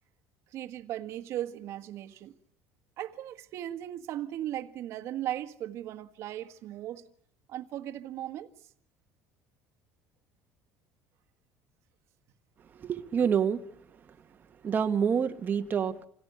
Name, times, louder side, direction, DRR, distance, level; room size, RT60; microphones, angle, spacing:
voice 1, 0.5-2.3 3.0-7.0 7.5-8.5, right 12 dB, 60° right, 1.6 m, -37 dB
voice 2, 12.8-13.6 14.6-16.0, right 7 dB, 35° right, 1.4 m, -27 dB
27.0 x 17.5 x 9.4 m
supercardioid pair, 105°, 5 cm